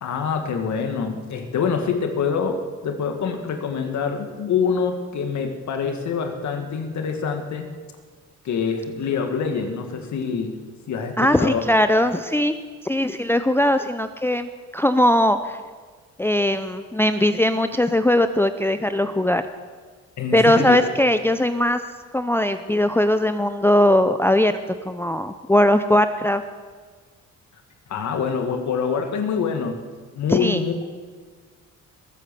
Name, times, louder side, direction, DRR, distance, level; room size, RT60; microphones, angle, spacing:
voice 1, 0.0-7.7 8.4-10.6 10.9-11.6 20.2-20.8 27.9-29.8 30.1-30.7, left 6 dB, 70° left, 5 dB, 1.9 m, -25 dB
voice 2, 11.2-12.5 12.8-15.6 16.2-19.4 20.3-21.8 22.1-24.5 24.9-26.4 30.3-30.6, left 1 dB, 10° left, 9 dB, 0.6 m, -19 dB
21.5 x 8.1 x 6.9 m, 1.5 s
cardioid pair, 90°, 30 cm